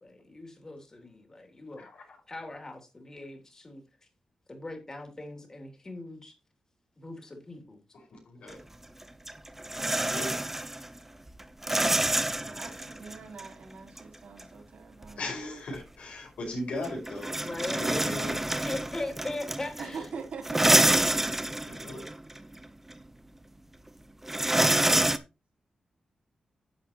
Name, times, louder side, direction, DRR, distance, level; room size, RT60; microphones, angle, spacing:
voice 1, 0.0-1.9 2.3-3.8 4.5-6.3 7.0-7.8 17.4-20.1, left 2 dB, 25° left, 3.0 m, -39 dB
voice 2, 1.8-2.2 7.9-8.6 9.7-10.4 15.2-18.0 21.7-22.1, left 2 dB, 85° left, 5.5 m, -39 dB
sound 1, 8.5-8.6 9.0-11.0 11.3-13.5 14.0-14.1 14.4-14.5 15.0-15.1 15.7-15.8 16.8-20.1 20.4-22.6 22.9-23.0 24.2-25.2, right 1 dB, 15° right, 0.8 m, -27 dB
voice 3, 12.4-15.3 19.8-21.4, right 5 dB, 80° right, 3.7 m, -43 dB
10.5 x 7.9 x 3.0 m
wide cardioid pair, 105°, 2 cm